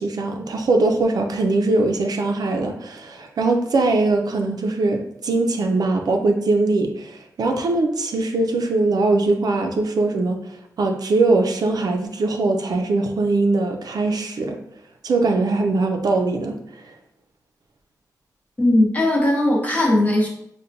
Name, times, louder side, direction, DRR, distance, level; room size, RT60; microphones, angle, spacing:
voice 1, 0.0-10.4 10.8-14.6 15.0-16.9, right 3 dB, 70° right, 4 dB, 0.4 m, -21 dB
voice 2, 18.6-20.3, left 1 dB, 25° left, -2 dB, 0.8 m, -18 dB
5.5 x 2.2 x 2.6 m, 0.74 s
wide cardioid pair, 180°, 7 cm